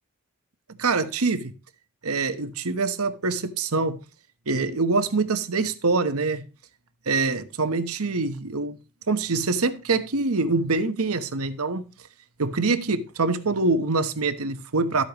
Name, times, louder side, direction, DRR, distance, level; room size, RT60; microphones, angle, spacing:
voice 1, 0.8-1.5 2.0-4.0 4.5-6.5 7.1-8.8 9.1-11.8 12.4-15.0, right 3 dB, 80° right, 1.1 m, -24 dB
12.5 x 8.3 x 3.0 m
head